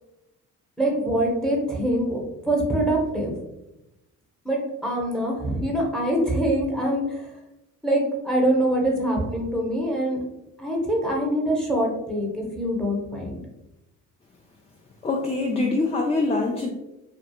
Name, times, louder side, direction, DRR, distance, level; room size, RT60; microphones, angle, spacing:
voice 1, 0.8-2.2 2.4-3.3 4.4-7.2 7.8-10.2 10.6-13.4, right 1 dB, ahead, -2 dB, 0.9 m, -24 dB
voice 2, 15.0-16.7, left 3 dB, 20° left, 1 dB, 0.4 m, -24 dB
2.3 x 2.3 x 2.9 m, 0.94 s
supercardioid pair, 55°, 35 cm